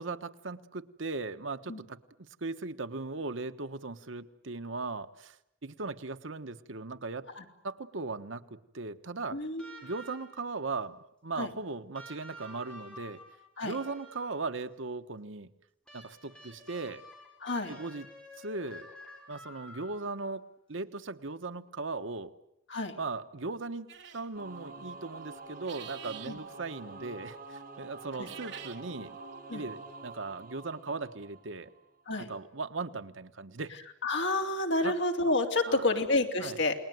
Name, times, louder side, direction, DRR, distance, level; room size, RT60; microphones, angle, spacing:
voice 1, 0.0-5.4 5.6-7.3 7.6-9.4 9.8-13.2 13.6-15.5 15.9-17.0 17.7-18.1 18.4-18.9 19.3-22.3 23.0-29.2 29.5-31.7 32.2-33.7 34.8-35.0 35.7-36.0 36.4-36.6, right 3 dB, 85° right, 9 dB, 1.3 m, -38 dB
voice 2, 9.3-9.7 11.4-11.5 13.6-13.7 17.4-17.7 22.7-22.9 28.2-28.3 29.5-29.6 32.1-32.3 34.0-36.7, left 2 dB, 65° left, 4 dB, 3.2 m, -29 dB
sound 1, 9.6-10.5 11.9-14.5 15.9-20.3 21.7-21.8, equal, 5° left, 7.1 m, -50 dB
sound 2, 23.9-24.3 25.5-26.4 28.1-28.8, right 9 dB, 65° right, 2.5 m, -46 dB
Singing / Musical instrument, 24.3-31.8, right 3 dB, 50° right, 6.5 m, -47 dB
29.0 x 20.5 x 9.3 m, 0.85 s
head